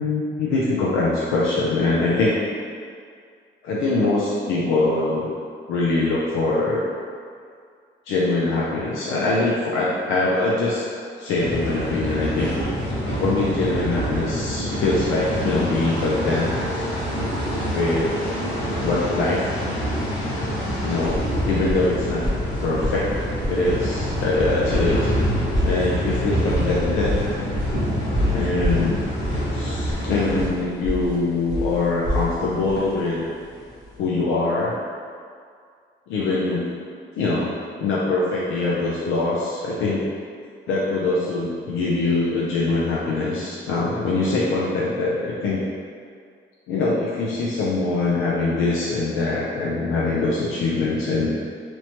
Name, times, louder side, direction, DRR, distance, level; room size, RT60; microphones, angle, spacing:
voice 1, 0.0-2.4 3.6-5.3 5.7-6.9 8.1-10.8 11.2-12.5 13.2-16.5 17.7-18.5 18.8-19.5 20.8-22.2 22.6-23.1 23.5-25.1 25.6-27.2 28.3-29.0 29.5-33.2 34.0-34.7 36.1-36.7 37.2-37.5 37.8-40.0 40.7-45.6 46.7-51.4, left 3 dB, 85° left, -6 dB, 0.4 m, -23 dB
sound 1, 11.4-30.5, equal, 60° left, 1.4 m, -26 dB
sound 2, 20.7-33.9, left 1 dB, 20° left, 0.7 m, -28 dB
3.0 x 2.0 x 2.8 m, 2.1 s
cardioid pair, 90°, 20 cm